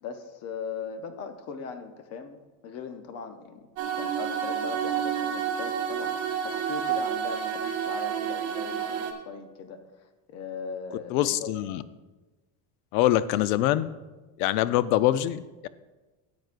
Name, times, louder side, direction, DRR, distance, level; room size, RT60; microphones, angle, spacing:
voice 1, 0.0-2.4 2.6-3.7 3.9-9.8 10.3-11.7, left 5 dB, 35° left, 8 dB, 0.7 m, -39 dB
sound 1, 3.8-9.1, right 8 dB, 65° right, 1.2 m, -29 dB
voice 2, 11.1-11.8 12.9-13.9 14.4-15.7, left 13 dB, 80° left, 15 dB, 0.6 m, -24 dB
13.5 x 7.9 x 2.5 m, 1.2 s
cardioid pair, 175°, 44 cm